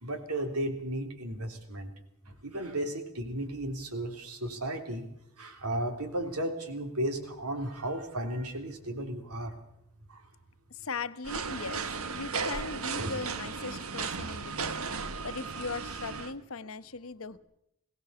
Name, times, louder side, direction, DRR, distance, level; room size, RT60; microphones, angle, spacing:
voice 1, 0.0-1.9 2.3-5.1 5.4-9.6 10.1-10.3 12.9-13.1, right 1 dB, 90° right, 5 dB, 3.4 m, -34 dB
voice 2, 10.7-17.4, left 4 dB, 65° left, 12 dB, 1.0 m, -39 dB
sound 1, 11.2-16.3, right 5 dB, 70° right, 1.4 m, -35 dB
22.0 x 17.5 x 6.9 m, 0.79 s
head